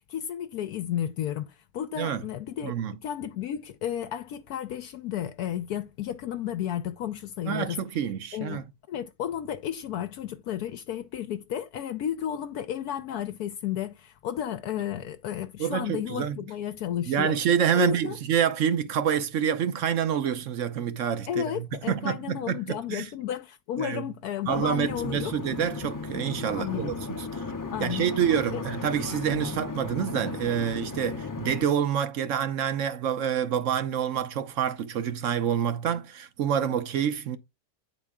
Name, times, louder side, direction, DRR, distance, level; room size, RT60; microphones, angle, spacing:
voice 1, 0.1-2.7 3.0-7.8 8.3-17.4 17.7-18.2 21.3-25.3 26.5-26.9 27.7-28.1 28.5-28.6, left 10 dB, 75° left, 1.1 m, -33 dB
voice 2, 2.6-2.9 7.5-8.6 15.6-16.4 17.1-23.1 23.8-24.0 24.5-27.4 27.8-37.4, right 8 dB, 60° right, 1.0 m, -27 dB
sound 1, 24.4-31.6, left 4 dB, 20° left, 0.5 m, -36 dB
9.2 x 4.4 x 3.5 m
omnidirectional pair, 1.7 m